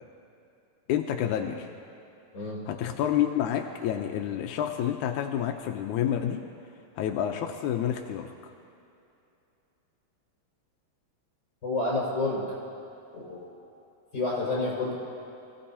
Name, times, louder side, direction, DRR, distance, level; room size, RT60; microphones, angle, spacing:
voice 1, 0.9-1.7 2.7-6.4 7.0-8.5, left 10 dB, 85° left, 3 dB, 2.1 m, -29 dB
voice 2, 11.6-12.4 13.1-13.5 14.1-14.9, left 2 dB, 35° left, -6 dB, 5.9 m, -29 dB
29.5 x 17.0 x 2.9 m, 2.7 s
omnidirectional pair, 3.4 m